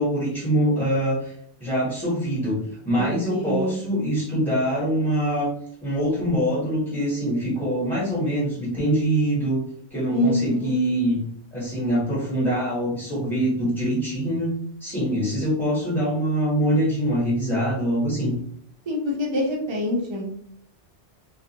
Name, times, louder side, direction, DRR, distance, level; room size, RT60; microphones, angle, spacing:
voice 1, 0.0-1.3 1.6-2.6 2.8-5.5 5.8-9.6 9.9-11.2 11.5-14.5 14.8-18.3, equal, 5° left, -8 dB, 0.9 m, -24 dB
voice 2, 3.0-3.8 10.1-10.7 18.9-20.3, left 1 dB, 35° right, -1 dB, 0.5 m, -25 dB
2.3 x 2.3 x 2.8 m, 0.64 s
omnidirectional pair, 1.2 m